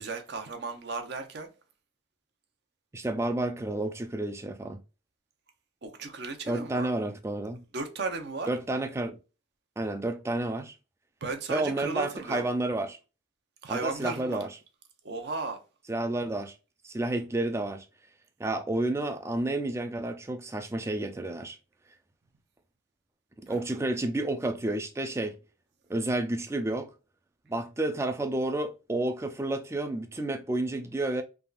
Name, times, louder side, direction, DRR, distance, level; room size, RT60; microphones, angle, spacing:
voice 1, 0.0-1.5 5.8-6.9 7.7-8.5 11.2-12.4 13.6-14.5 15.0-15.6 23.5-23.9, right 3 dB, 60° right, 0.6 m, -35 dB
voice 2, 2.9-4.8 6.5-7.6 8.5-9.2 9.8-10.7 11.5-13.0 13.7-14.5 15.9-16.6 16.8-17.9 18.4-21.6 23.4-25.4 25.9-26.9 27.5-31.2, right 2 dB, 15° right, 0.3 m, -30 dB
3.4 x 2.4 x 2.3 m
head